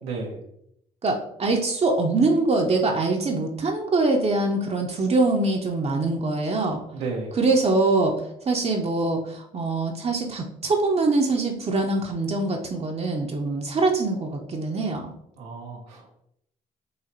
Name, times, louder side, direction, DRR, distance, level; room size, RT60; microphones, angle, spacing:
voice 1, 0.0-0.4 6.9-7.3 15.4-16.1, right 4 dB, 90° right, -1 dB, 0.8 m, -33 dB
voice 2, 1.0-6.8 7.4-8.2 8.5-15.1, right 3 dB, 40° right, 2 dB, 0.7 m, -23 dB
4.8 x 2.8 x 2.8 m, 0.76 s
supercardioid pair, 65°, 17 cm